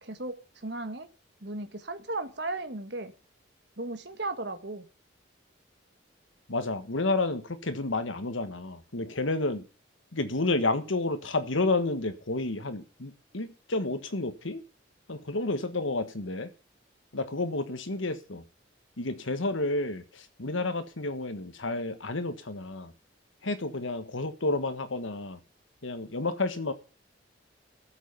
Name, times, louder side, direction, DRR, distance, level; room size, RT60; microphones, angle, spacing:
voice 1, 0.0-1.1 1.4-3.1 3.8-4.9, right 2 dB, 60° right, 8 dB, 1.5 m, -36 dB
voice 2, 6.5-9.6 10.1-14.6 15.1-16.5 17.1-18.4 19.0-22.9 23.4-25.4 25.8-26.7, left 2 dB, 85° left, 10 dB, 1.5 m, -30 dB
13.5 x 7.5 x 7.0 m, 0.38 s
head